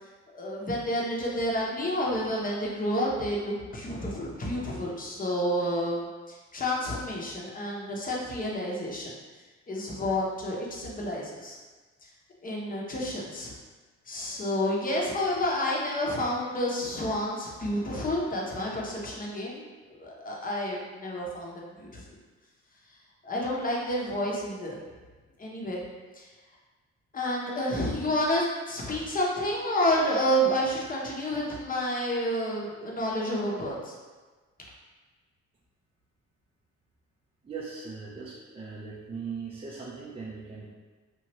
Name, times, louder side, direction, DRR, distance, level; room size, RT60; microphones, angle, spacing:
voice 1, 0.3-9.1 9.7-11.6 12.0-12.1 12.4-13.5 14.1-22.0 23.2-24.8 25.4-25.8 26.1-26.3 27.1-33.9, equal, 30° left, -3 dB, 0.7 m, -30 dB
voice 2, 37.4-40.7, right 5 dB, 20° right, -6 dB, 0.4 m, -39 dB
2.9 x 2.4 x 2.9 m, 1.3 s
cardioid pair, 90°, 30 cm